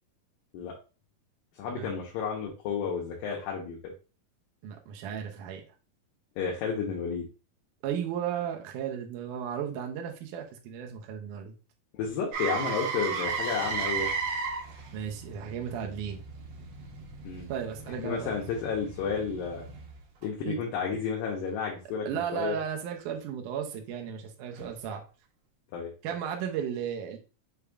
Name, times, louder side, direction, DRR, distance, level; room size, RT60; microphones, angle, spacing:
voice 1, 1.6-3.9 6.4-7.3 11.9-14.1 17.2-17.5 18.0-19.6 20.2-22.6 25.7-25.9, left 6 dB, 80° left, -2 dB, 2.5 m, -32 dB
voice 2, 4.6-5.6 7.8-11.5 14.9-16.2 17.5-18.4 20.5-20.6 22.1-25.0 26.0-27.2, right 8 dB, 75° right, 2 dB, 2.0 m, -34 dB
Motor vehicle (road), 12.3-20.2 24.6-24.7, right 5 dB, 55° right, 2.3 m, -35 dB
6.7 x 3.5 x 2.3 m, 0.34 s
omnidirectional pair, 4.2 m